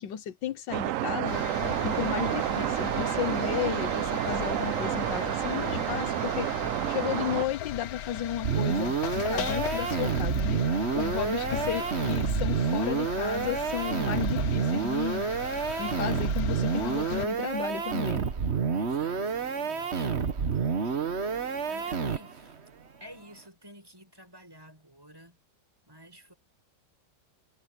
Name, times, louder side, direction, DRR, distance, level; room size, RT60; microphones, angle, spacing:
voice 1, 0.0-18.3 20.8-21.0, left 9 dB, 85° left, 1.7 m, -34 dB
sound 1, 0.7-7.5, right 14 dB, 75° right, 0.7 m, -30 dB
sound 2, 1.3-17.3, left 11 dB, 60° left, 1.2 m, -37 dB
sound 3, 8.4-22.5, right 6 dB, 40° right, 1.4 m, -29 dB
voice 2, 11.0-11.7 18.7-20.1 20.5-21.1 21.6-22.6 23.0-25.4 25.9-26.3, equal, 10° right, 7.4 m, -51 dB
omnidirectional pair, 1.9 m